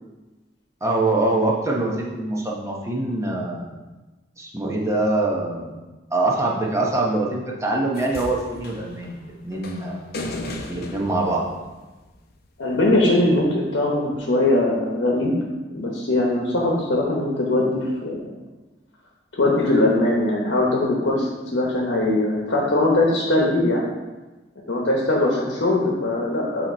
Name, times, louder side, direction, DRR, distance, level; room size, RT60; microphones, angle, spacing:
voice 1, 0.8-3.7 4.4-5.7 6.1-9.2 9.4-10.0 10.6-11.4, right 2 dB, 15° right, -2 dB, 0.8 m, -24 dB
sound 1, 7.9-12.3 13.4-13.5, left 2 dB, 55° left, 0.6 m, -36 dB
voice 2, 12.6-15.3 15.7-18.3 19.3-23.8 24.7-26.7, left 2 dB, 80° left, -2 dB, 0.9 m, -21 dB
7.6 x 3.0 x 4.2 m, 1.2 s
head